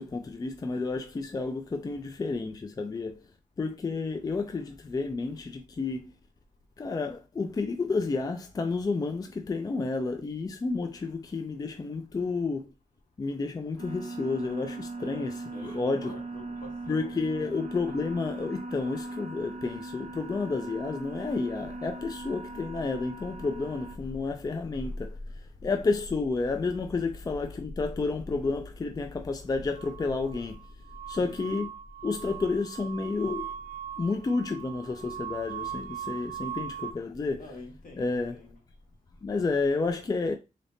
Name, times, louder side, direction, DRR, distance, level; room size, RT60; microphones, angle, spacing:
voice 1, 0.0-3.2 3.6-6.1 6.8-12.7 13.2-15.3 15.6-16.1 16.9-25.2 25.6-30.6 31.1-31.7 32.0-33.5 34.0-37.5 38.0-38.4 39.2-40.4, left 3 dB, 25° left, 0.4 m, -31 dB
sound 1, 13.8-24.0, right 2 dB, 55° right, 1.0 m, -39 dB
voice 2, 15.0-17.5 31.1-31.4 36.3-36.4 37.3-38.6, left 2 dB, 75° left, 1.7 m, -48 dB
sound 2, 29.8-36.9, right 9 dB, 75° right, 0.4 m, -40 dB
3.7 x 3.4 x 2.6 m
wide cardioid pair, 140°, 14 cm